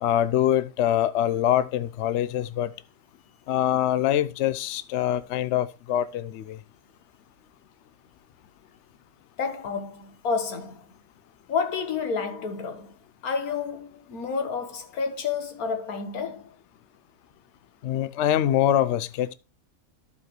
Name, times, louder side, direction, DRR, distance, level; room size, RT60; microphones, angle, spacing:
voice 1, 0.0-2.7 3.5-6.6 17.8-19.3, left 11 dB, 65° left, 0.8 m, -24 dB
voice 2, 9.4-10.9 11.5-12.9 13.2-16.6, left 5 dB, 90° left, 1.7 m, -30 dB
14.0 x 4.8 x 3.0 m
omnidirectional pair, 1.5 m